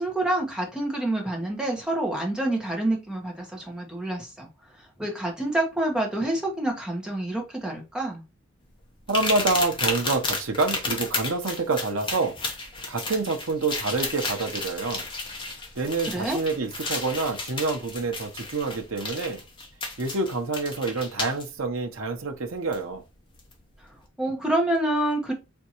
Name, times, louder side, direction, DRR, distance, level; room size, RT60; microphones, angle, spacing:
voice 1, 0.0-4.5 5.0-8.2 16.1-16.4 24.2-25.3, right 1 dB, 5° right, 1.1 m, -27 dB
sound 1, 9.1-21.4 22.7-22.8 23.4-23.5, left 3 dB, 25° left, 1.0 m, -32 dB
voice 2, 9.1-12.3 12.9-15.1 15.8-19.4 20.0-23.0, right 3 dB, 70° right, 0.8 m, -27 dB
4.4 x 3.5 x 2.9 m
head